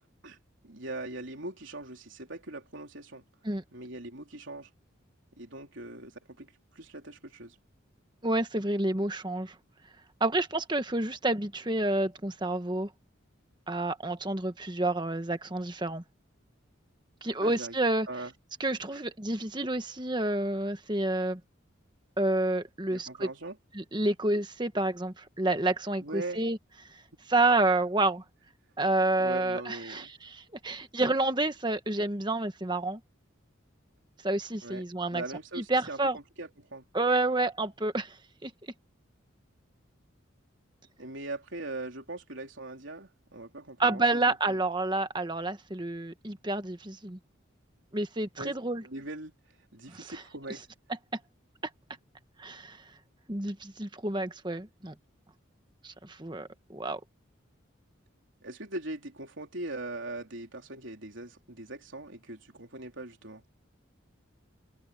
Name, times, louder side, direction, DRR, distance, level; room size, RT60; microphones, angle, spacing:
voice 1, 0.6-3.2 3.7-4.7 5.4-7.6 17.4-17.8 18.1-18.3 18.9-19.0 22.9-23.6 26.0-26.4 29.2-30.1 34.6-34.9 35.1-36.8 41.0-44.6 48.4-48.5 48.8-49.3 49.7-50.7 58.4-63.4, right 2 dB, 70° right, 3.6 m, -41 dB
voice 2, 8.2-9.5 10.2-12.9 13.7-16.0 17.2-18.1 18.6-21.4 22.2-23.3 23.7-26.6 27.3-28.2 28.8-33.0 34.2-35.2 35.5-36.2 36.9-38.2 38.4-38.5 43.8-47.2 47.9-48.8 49.9-50.2 52.4-52.8 53.3-54.9 55.8-57.0, right 2 dB, 20° right, 1.4 m, -29 dB
head